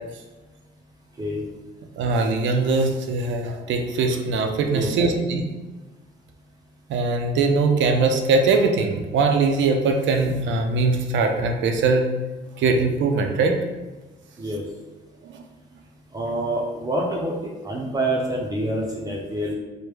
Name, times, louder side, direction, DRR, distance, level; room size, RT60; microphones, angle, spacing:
voice 1, 2.0-5.5 6.9-12.1 12.6-13.5 15.2-15.4, right 3 dB, 70° right, 4 dB, 0.5 m, -21 dB
voice 2, 4.7-5.2 14.4-14.6 16.1-19.5, right 1 dB, 20° right, -3 dB, 0.5 m, -27 dB
3.2 x 2.1 x 3.4 m, 1.2 s
cardioid pair, 90°, 20 cm